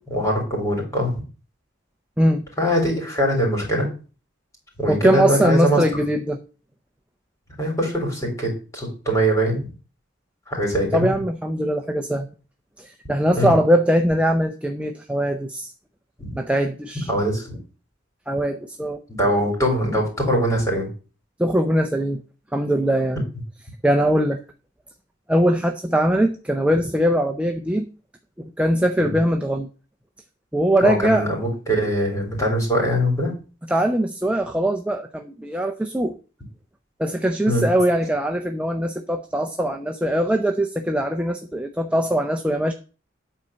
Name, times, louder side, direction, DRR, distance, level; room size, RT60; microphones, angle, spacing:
voice 1, 0.1-1.1 2.6-3.9 4.8-5.8 7.6-9.7 10.5-11.1 13.4-13.6 16.2-16.4 17.1-17.6 19.2-20.9 29.0-29.1 30.8-33.3 37.5-37.6, equal, 15° left, 0 dB, 3.7 m, -22 dB
voice 2, 4.9-6.4 10.9-12.3 12.8-15.7 16.3-17.1 18.3-19.0 21.4-22.2 22.5-23.2 23.8-24.4 25.3-27.9 28.4-29.7 30.5-31.3 33.7-36.2 37.0-42.7, right 1 dB, 5° right, 5 dB, 0.6 m, -21 dB
9.0 x 4.4 x 6.3 m, 0.35 s
head